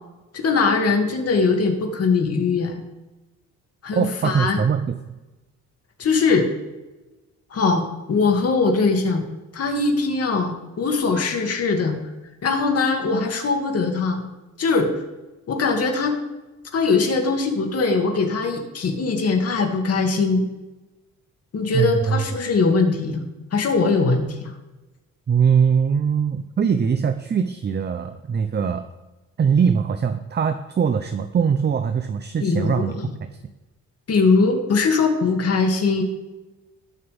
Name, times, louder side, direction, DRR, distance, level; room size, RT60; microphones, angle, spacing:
voice 1, 0.3-2.8 3.8-4.6 6.0-6.5 7.5-9.2 9.5-12.0 12.4-14.2 14.6-14.9 15.5-16.2 16.7-20.5 21.5-24.5 32.4-33.1 34.1-36.0, left 4 dB, 55° left, 3 dB, 2.5 m, -21 dB
voice 2, 3.9-5.1 21.7-22.2 25.3-28.9 29.4-33.0, right 6 dB, 35° right, 9 dB, 0.7 m, -21 dB
20.0 x 7.3 x 3.6 m, 1.1 s
cardioid pair, 90°, 30 cm